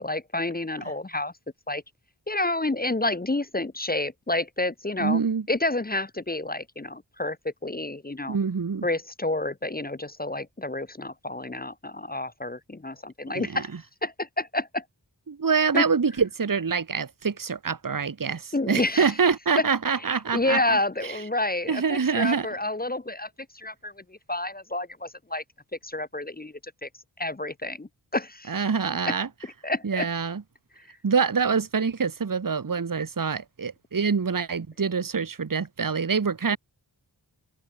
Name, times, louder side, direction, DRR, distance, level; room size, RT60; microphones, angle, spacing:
voice 1, 0.0-1.3 1.7-1.8 2.3-5.2 5.5-8.4 8.8-13.7 14.0-14.8 15.7-15.8 18.5-19.1 19.6-19.7 20.1-25.4 25.8-26.9 27.2-28.5 29.1-29.2 29.6-30.1 30.8-30.9, left 2 dB, 20° left, 0.7 m, -29 dB
voice 2, 5.0-5.5 8.2-8.9 13.3-13.6 15.3-21.2 21.7-22.5 28.5-29.3 29.8-30.4 31.0-36.6, right 5 dB, 50° right, 1.1 m, -25 dB
wide cardioid pair, 60°, 43 cm